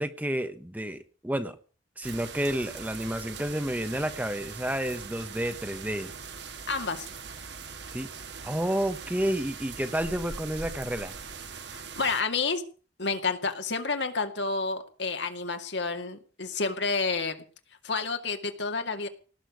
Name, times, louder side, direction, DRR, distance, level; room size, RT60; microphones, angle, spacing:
voice 1, 0.0-1.6 2.0-6.1 7.9-8.1 8.4-11.1, right 1 dB, 10° right, 9 dB, 1.1 m, -30 dB
sound 1, 2.0-12.2, right 5 dB, 70° right, 1.8 m, -41 dB
voice 2, 6.7-7.1 11.7-12.6 13.0-17.4 17.8-19.1, left 4 dB, 70° left, 6 dB, 2.3 m, -30 dB
18.5 x 6.9 x 9.4 m, 0.40 s
head